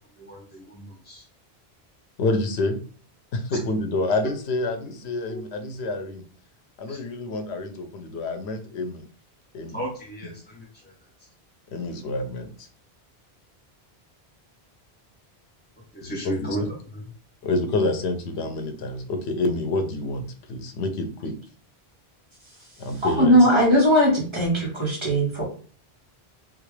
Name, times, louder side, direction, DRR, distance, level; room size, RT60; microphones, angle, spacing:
voice 1, 0.2-1.2 5.2-5.4 6.9-7.0 9.7-10.9 15.9-17.0, right 1 dB, 10° left, -3 dB, 0.5 m, -34 dB
voice 2, 2.2-2.8 3.3-6.2 6.8-9.0 9.5-9.8 11.7-12.7 16.0-16.5 17.4-21.3 22.8-23.5, left 2 dB, 85° left, 8 dB, 0.9 m, -28 dB
voice 3, 23.0-25.4, equal, 25° right, -3 dB, 1.3 m, -19 dB
3.8 x 2.4 x 3.2 m, 0.41 s
omnidirectional pair, 1.1 m